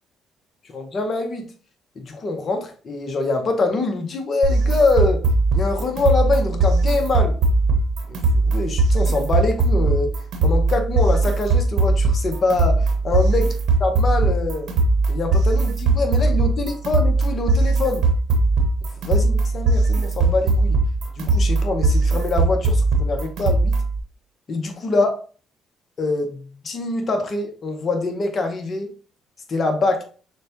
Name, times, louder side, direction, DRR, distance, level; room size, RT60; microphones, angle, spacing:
voice 1, 0.7-1.5 2.0-5.2 5.5-7.4 8.1-10.2 10.4-13.5 13.8-14.7 15.1-18.0 19.1-20.8 21.2-23.8 24.5-25.1 26.0-28.9 29.5-30.0, left 3 dB, 45° left, 5 dB, 0.9 m, -24 dB
sound 1, 4.4-24.0, right 2 dB, 75° right, 1.0 m, -19 dB
6.4 x 2.2 x 2.8 m, 0.39 s
supercardioid pair, 60°, 0 cm